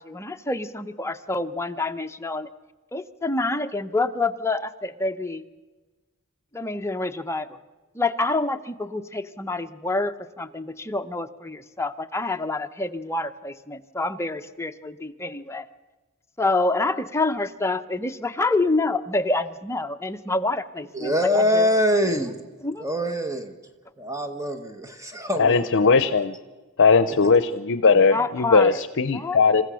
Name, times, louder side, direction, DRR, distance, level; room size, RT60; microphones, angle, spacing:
voice 1, 0.0-2.5 2.9-5.4 6.5-7.5 7.9-15.7 16.4-21.7 22.6-22.8 28.1-28.8 29.1-29.4, left 2 dB, 15° left, 7 dB, 0.8 m, -27 dB
voice 2, 20.9-22.4 22.8-23.5 24.0-25.9 27.1-27.3, equal, 15° right, 6 dB, 1.3 m, -24 dB
voice 3, 25.4-26.3 26.8-29.6, left 4 dB, 60° left, 12 dB, 0.7 m, -18 dB
27.5 x 15.5 x 6.3 m, 1.2 s
head